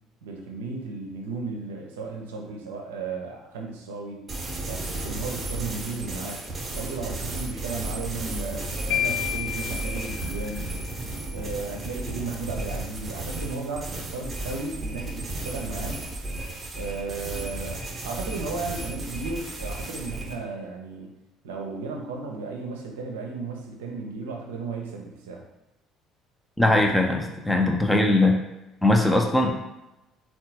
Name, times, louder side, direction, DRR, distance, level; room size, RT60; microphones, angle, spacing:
voice 1, 0.2-4.3 4.7-6.5 6.7-10.7 11.3-16.0 16.7-21.1 21.4-25.5, right 4 dB, 80° right, 2 dB, 0.5 m, -35 dB
sound 1, 4.3-20.4, right 2 dB, 30° right, 0.8 m, -34 dB
sound 2, 8.9-11.0, left 11 dB, 65° left, 0.3 m, -31 dB
voice 2, 26.6-28.4 28.8-29.5, left 2 dB, 10° left, 2 dB, 0.5 m, -20 dB
3.6 x 2.2 x 2.8 m, 0.96 s
hypercardioid pair, 60°, 0 cm